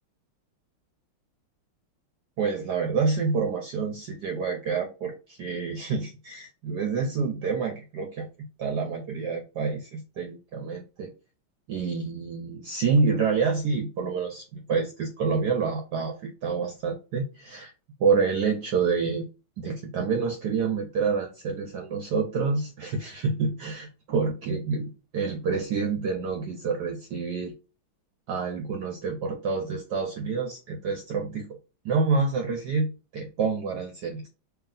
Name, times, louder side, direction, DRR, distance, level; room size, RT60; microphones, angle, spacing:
voice 1, 2.4-11.1 11.7-17.7 18.0-19.2 19.6-27.5 28.3-31.5 31.8-34.3, right 5 dB, 70° right, 3 dB, 1.0 m, -28 dB
3.1 x 2.8 x 3.8 m, 0.32 s
omnidirectional pair, 2.3 m